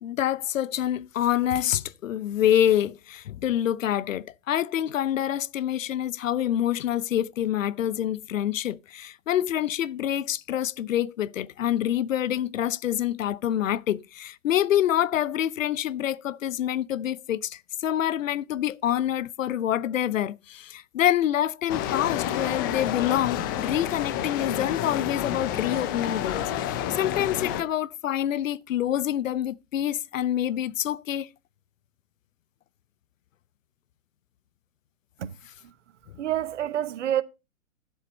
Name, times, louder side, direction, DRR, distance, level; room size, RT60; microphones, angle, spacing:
voice 1, 0.0-31.3, left 11 dB, 70° left, 0.6 m, -26 dB
sound 1, 21.7-27.6, left 10 dB, 15° left, 0.4 m, -29 dB
voice 2, 36.2-37.2, right 11 dB, 60° right, 1.0 m, -27 dB
12.5 x 7.3 x 4.0 m
hypercardioid pair, 130°, 41 cm